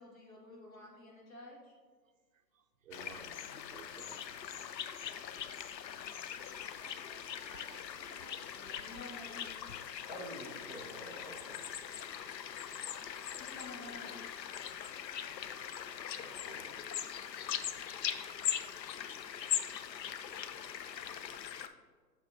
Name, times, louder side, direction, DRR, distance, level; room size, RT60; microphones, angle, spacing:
voice 1, 0.0-1.7 8.5-9.5 13.4-14.2, left 1 dB, 55° left, -2 dB, 1.8 m, -50 dB
voice 2, 2.3-4.4 6.3-8.7 12.8-13.4, right 5 dB, 50° right, 6 dB, 0.6 m, -58 dB
sound 1, 2.9-21.7, left 9 dB, 80° left, 0.6 m, -41 dB
voice 3, 10.0-11.7 16.2-16.7, equal, 30° left, -5 dB, 0.6 m, -48 dB
6.5 x 6.1 x 2.6 m, 1.5 s
hypercardioid pair, 170°, 50 cm